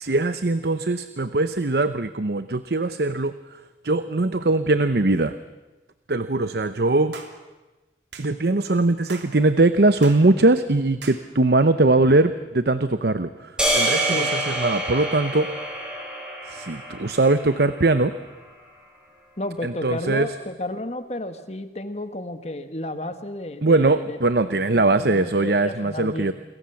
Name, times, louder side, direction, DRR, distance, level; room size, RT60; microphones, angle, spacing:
voice 1, 0.0-3.3 3.8-5.3 6.1-7.1 8.2-15.5 16.5-18.1 19.6-20.3 23.6-26.3, right 2 dB, 65° right, 12 dB, 0.8 m, -21 dB
sound 1, 7.1-7.4 8.1-8.3 9.1-9.3 10.0-10.3 11.0-11.2, right 5 dB, 80° right, 3.1 m, -39 dB
sound 2, 13.6-17.9, right 1 dB, 5° right, 5.8 m, -26 dB
voice 2, 19.4-24.2 24.5-26.3, left 1 dB, 35° left, 9 dB, 1.6 m, -32 dB
28.5 x 22.5 x 7.2 m, 1.2 s
head